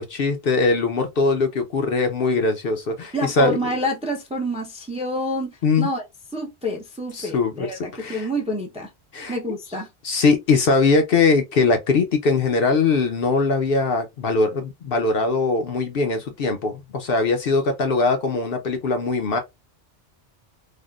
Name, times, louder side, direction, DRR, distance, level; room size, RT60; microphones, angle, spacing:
voice 1, 0.0-3.7 5.6-5.9 7.1-8.3 9.1-9.4 10.0-19.4, left 4 dB, 60° left, 0.7 m, -21 dB
voice 2, 3.1-6.0 6.3-8.9 9.3-9.9, equal, 10° right, 0.5 m, -28 dB
3.5 x 2.1 x 2.3 m
omnidirectional pair, 1.2 m